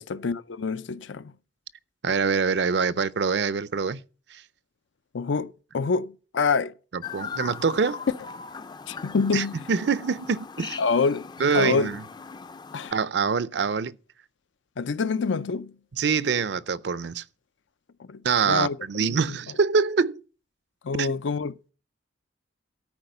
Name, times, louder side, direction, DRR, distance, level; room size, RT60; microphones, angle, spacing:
voice 1, 0.1-1.3 5.1-6.7 8.9-9.6 10.8-11.3 11.5-11.9 12.7-12.9 14.8-15.7 18.1-19.3 20.8-21.5, left 4 dB, 80° left, 0.5 m, -26 dB
voice 2, 2.0-4.0 4.3-4.4 6.9-8.0 9.3-10.8 11.4-12.0 12.9-14.0 16.0-17.2 18.2-20.2 21.0-21.1, right 5 dB, 65° right, 0.5 m, -25 dB
Chirp tweet, 7.0-12.9, left 5 dB, 20° left, 0.4 m, -39 dB
13.0 x 4.8 x 6.7 m
head